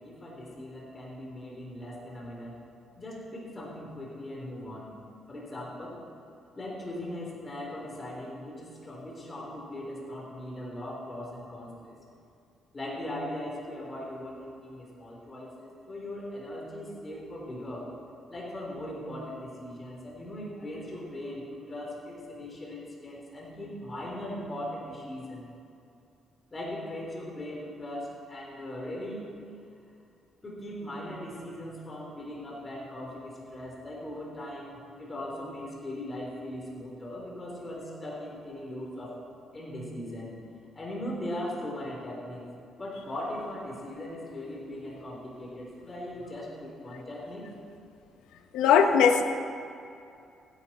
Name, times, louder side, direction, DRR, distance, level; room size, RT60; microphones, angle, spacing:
voice 1, 0.0-2.6 3.0-4.9 5.3-6.1 6.6-12.0 12.7-17.9 18.3-25.5 26.5-29.3 30.4-39.2 39.5-40.4 40.7-42.4 42.8-47.5, left 1 dB, 30° left, -3 dB, 3.5 m, -39 dB
voice 2, 48.5-49.2, left 7 dB, 90° left, 7 dB, 0.8 m, -19 dB
15.5 x 10.5 x 4.3 m, 2.5 s
cardioid pair, 90°, 0 cm